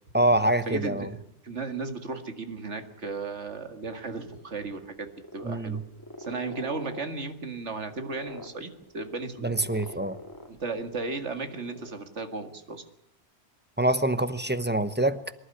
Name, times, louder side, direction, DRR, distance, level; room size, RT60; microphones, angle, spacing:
voice 1, 0.1-1.1 5.4-5.8 9.4-10.2 13.8-15.3, right 1 dB, 10° right, 12 dB, 0.9 m, -25 dB
voice 2, 0.7-1.2 1.4-5.8 6.2-9.5 9.8-10.0 10.5-12.8, right 3 dB, 85° right, 7 dB, 2.3 m, -35 dB
sound 1, 4.1-11.0 11.3-11.9, left 1 dB, 15° left, 2.2 m, -44 dB
24.5 x 11.5 x 9.9 m, 0.73 s
omnidirectional pair, 1.2 m